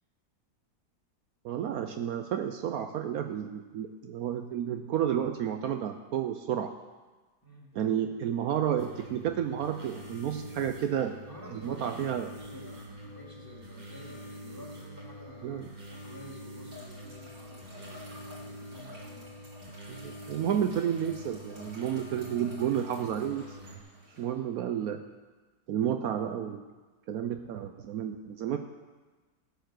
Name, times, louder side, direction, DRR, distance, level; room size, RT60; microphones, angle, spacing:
voice 1, 1.4-6.7 7.7-11.2 11.5-12.3 15.4-15.7 19.9-23.6 24.2-25.0 25.7-26.6 27.1-28.6, right 9 dB, 70° right, 6 dB, 1.0 m, -31 dB
sound 1, 8.8-23.8, equal, 30° right, 1.4 m, -45 dB
voice 2, 11.3-19.5 24.1-24.5, equal, 15° left, -3 dB, 2.4 m, -51 dB
sound 2, 16.7-24.2, left 2 dB, 90° right, 3.3 m, -51 dB
16.0 x 6.9 x 6.4 m, 1.3 s
omnidirectional pair, 1.7 m